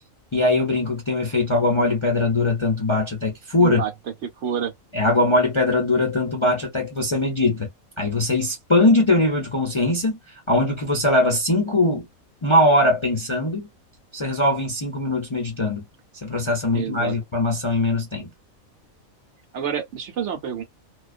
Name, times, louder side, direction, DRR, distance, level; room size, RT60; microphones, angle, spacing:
voice 1, 0.3-3.8 4.9-7.7 8.0-12.1 12.4-13.7 14.1-15.8 16.2-18.3, left 2 dB, 35° left, 0.5 m, -21 dB
voice 2, 4.2-4.7 16.7-17.1 19.5-20.6, right 8 dB, 65° right, 0.9 m, -28 dB
2.3 x 2.2 x 2.4 m
omnidirectional pair, 1.4 m